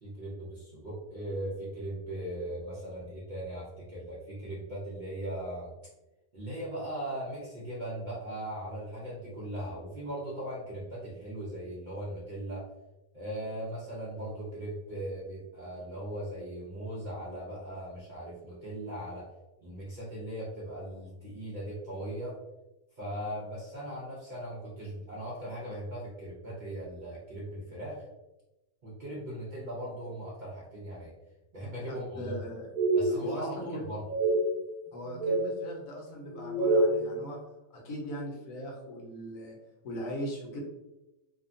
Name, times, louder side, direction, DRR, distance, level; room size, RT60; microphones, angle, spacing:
voice 1, 0.0-5.7 6.3-12.6 13.1-19.3 19.6-22.4 23.0-28.0 28.8-31.1 31.5-32.3 32.9-34.0, right 1 dB, 80° right, -7 dB, 0.4 m, -39 dB
voice 2, 31.9-32.7 33.1-33.8 34.9-37.4 37.7-39.6 39.8-40.6, equal, 65° left, -1 dB, 1.1 m, -39 dB
sound 1, 32.1-32.4 32.7-33.6 34.1-34.4 34.9-35.5 36.2-37.0, right 2 dB, 5° right, 0.6 m, -27 dB
2.8 x 2.2 x 2.5 m, 0.98 s
omnidirectional pair, 1.7 m